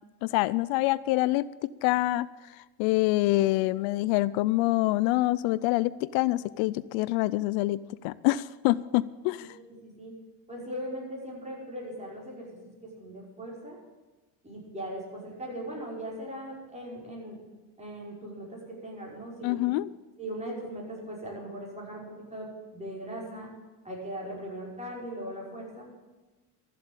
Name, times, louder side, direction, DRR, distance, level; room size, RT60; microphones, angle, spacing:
voice 1, 0.2-9.6 19.4-19.9, left 18 dB, 75° left, 18 dB, 0.5 m, -26 dB
voice 2, 9.5-10.1 10.5-13.8 14.4-17.4 17.8-19.6 20.2-23.5 23.8-25.9, right 1 dB, 15° right, -4 dB, 5.5 m, -39 dB
13.5 x 7.7 x 8.8 m, 1.2 s
cardioid pair, 115°, 48 cm